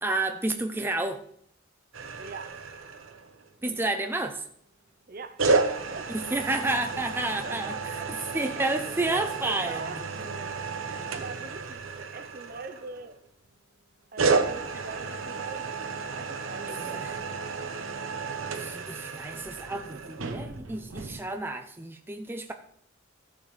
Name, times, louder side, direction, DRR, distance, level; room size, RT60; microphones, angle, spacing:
voice 1, 0.0-1.2 3.6-4.4 6.1-7.7 8.1-9.9 16.7-17.2 18.6-22.5, right 2 dB, 10° right, 5 dB, 0.5 m, -30 dB
sound 1, 1.9-3.5 5.4-13.2 14.2-21.2, right 4 dB, 85° right, 0.9 m, -32 dB
voice 2, 2.2-2.8 3.6-3.9 5.1-6.1 7.4-8.6 9.4-10.7 11.1-13.2 14.1-17.3, right 3 dB, 45° right, 10 dB, 0.7 m, -43 dB
14.5 x 7.0 x 3.2 m, 0.69 s
head